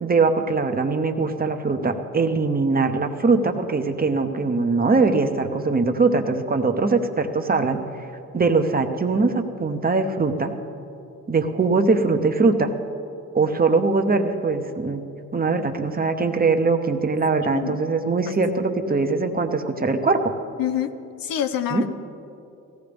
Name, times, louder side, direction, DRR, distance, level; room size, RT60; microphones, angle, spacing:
voice 1, 0.0-7.8 8.3-10.5 11.3-12.7 13.3-15.0 15.3-20.3 21.7-21.8, right 4 dB, 25° right, 6 dB, 0.9 m, -21 dB
voice 2, 20.6-20.9 21.2-21.9, left 10 dB, 85° left, 9 dB, 0.8 m, -26 dB
18.0 x 15.5 x 3.5 m, 2.7 s
cardioid pair, 95°, 34 cm